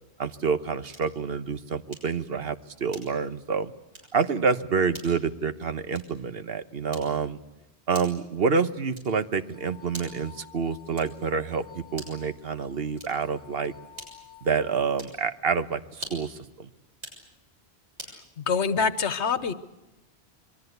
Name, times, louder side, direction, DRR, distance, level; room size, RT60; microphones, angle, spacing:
voice 1, 0.2-3.7 4.1-7.4 7.9-13.7 14.4-16.7, right 5 dB, 60° right, 12 dB, 1.3 m, -28 dB
sound 1, 0.9-1.2 1.9-2.2 2.9-3.3 3.9-4.2 4.9-5.2 5.9-6.3 6.9-7.3 7.9-8.3 8.9-9.3 9.9-10.3 10.9-11.3 11.9-12.3 12.9-13.3 13.9-14.4 14.9-15.2 15.9-16.4 16.9-17.3 18.0-18.2, right 1 dB, 80° right, 7.2 m, -44 dB
sound 2, 9.4-15.2, left 10 dB, 55° left, 3.1 m, -52 dB
voice 2, 18.4-19.5, left 5 dB, 90° left, 14 dB, 1.4 m, -25 dB
27.0 x 23.0 x 8.1 m, 0.99 s
omnidirectional pair, 1.1 m